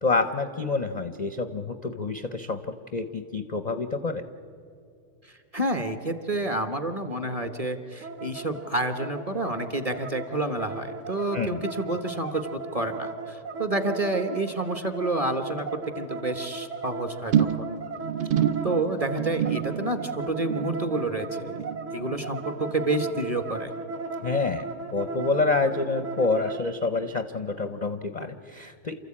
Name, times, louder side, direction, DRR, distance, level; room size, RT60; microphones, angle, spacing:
voice 1, 0.0-4.2 11.3-11.6 24.2-24.6 24.9-28.9, left 3 dB, 45° left, 9 dB, 0.5 m, -27 dB
voice 2, 5.2-15.7 16.0-17.7 18.6-21.6 21.9-23.7, right 2 dB, 25° right, 8 dB, 1.0 m, -29 dB
sound 1, 8.0-26.7, right 3 dB, 55° right, 1.4 m, -37 dB
sound 2, 17.3-23.9 24.2-24.6 24.9-25.0, right 9 dB, 70° right, 0.5 m, -30 dB
29.0 x 13.5 x 8.6 m, 2.5 s
omnidirectional pair, 1.7 m